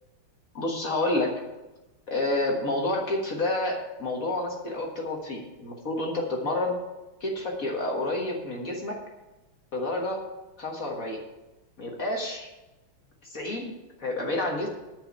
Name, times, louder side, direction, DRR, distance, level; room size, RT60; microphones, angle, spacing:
voice 1, 0.5-1.3 2.1-6.8 7.2-9.0 9.7-10.2 10.6-11.2 11.8-12.5 13.2-13.7 14.0-14.7, left 2 dB, 40° left, 0 dB, 1.8 m, -29 dB
10.0 x 5.6 x 8.6 m, 1.0 s
omnidirectional pair, 2.4 m